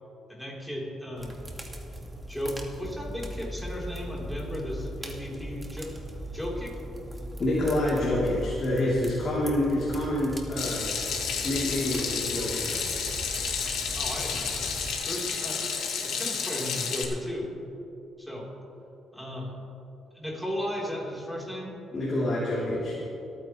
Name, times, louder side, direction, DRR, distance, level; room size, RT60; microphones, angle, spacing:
voice 1, 0.3-1.4 2.3-5.9 6.3-6.8 13.9-14.7 15.1-17.5 18.2-18.5 19.1-19.5 20.1-21.8, equal, ahead, -4 dB, 3.7 m, -35 dB
sound 1, 1.2-14.9, equal, 15° right, 1.8 m, -39 dB
voice 2, 7.4-10.9 11.4-12.7 21.9-23.0, left 1 dB, 40° left, -8 dB, 3.2 m, -27 dB
Water tap faucet / Sink (filling or washing), 10.6-17.0, left 6 dB, 75° left, 1.6 m, -31 dB
26.0 x 9.4 x 3.2 m, 2.9 s
cardioid pair, 90°, 0 cm